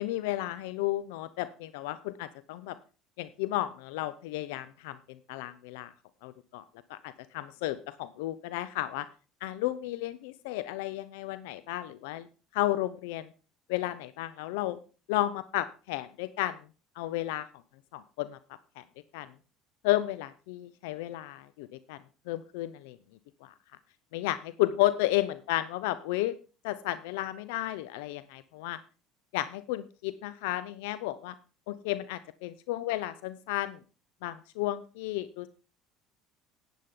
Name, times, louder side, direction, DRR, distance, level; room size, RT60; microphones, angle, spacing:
voice 1, 0.0-2.8 3.2-5.9 6.2-6.6 6.9-9.1 9.4-12.3 12.5-13.3 13.7-14.8 15.1-16.6 17.0-17.5 17.9-18.4 18.8-18.9 19.1-19.3 19.8-22.0 22.3-23.0 23.4-23.5 24.1-26.3 26.6-28.8 29.3-31.3 31.7-33.8 34.2-35.5, left 15 dB, 80° left, 15 dB, 0.5 m, -32 dB
12.0 x 9.3 x 3.7 m, 0.34 s
supercardioid pair, 85°, 0 cm